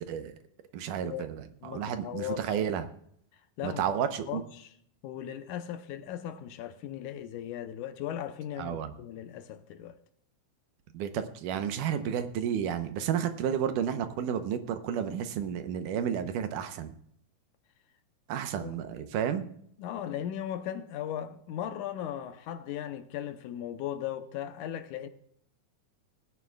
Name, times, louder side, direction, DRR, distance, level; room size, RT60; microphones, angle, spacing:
voice 1, 0.7-1.4 1.6-2.8 3.6-4.4 8.6-8.9 10.9-16.9 18.3-19.5, right 8 dB, 80° right, 2.4 m, -31 dB
voice 2, 1.6-2.6 3.6-3.8 4.3-4.7 5.0-10.0 18.6-18.7 19.8-25.1, left 10 dB, 75° left, 2.2 m, -37 dB
20.0 x 9.7 x 2.3 m
omnidirectional pair, 3.8 m